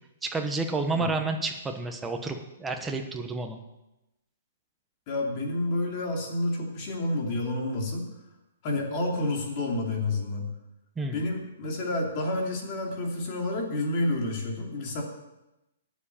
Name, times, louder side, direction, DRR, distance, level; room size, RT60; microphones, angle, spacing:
voice 1, 0.2-3.6 11.0-11.2, right 3 dB, 10° right, 4 dB, 1.1 m, -30 dB
voice 2, 5.1-8.1 8.6-10.5 11.1-15.0, left 2 dB, 35° left, 0 dB, 2.7 m, -29 dB
9.3 x 7.4 x 9.1 m, 0.94 s
hypercardioid pair, 160°, 0 cm